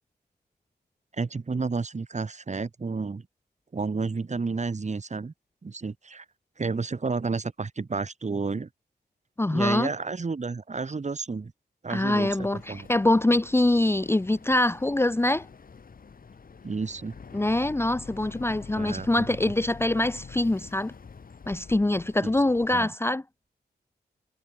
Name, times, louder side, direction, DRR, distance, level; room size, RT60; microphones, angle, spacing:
voice 1, 1.2-3.3 3.7-5.3 5.6-6.3 6.6-8.7 9.5-11.5 11.8-12.9 16.6-17.2 18.8-19.3 22.2-22.3 22.7-22.9, right 4 dB, 40° right, 5.5 m, -31 dB
voice 2, 9.4-9.9 11.9-15.5 17.3-20.9 21.5-23.2, left 1 dB, 15° left, 0.9 m, -24 dB
Boat Water vehicle, 11.9-22.7, left 5 dB, 55° left, 5.4 m, -46 dB
cardioid pair, 75°, 18 cm